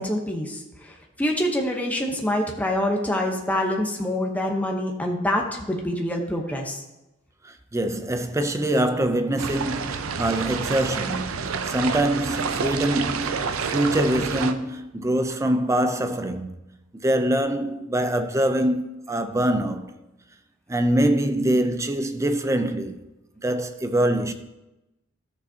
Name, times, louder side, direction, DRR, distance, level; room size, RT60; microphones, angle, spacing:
voice 1, 0.0-6.8, left 1 dB, 10° left, 0.9 m, -26 dB
voice 2, 7.4-16.6 16.9-19.9 20.7-23.0 23.4-24.3, right 1 dB, 15° right, 0.5 m, -24 dB
sound 1, 9.4-14.5, right 5 dB, 90° right, 0.6 m, -28 dB
13.0 x 6.7 x 2.8 m
head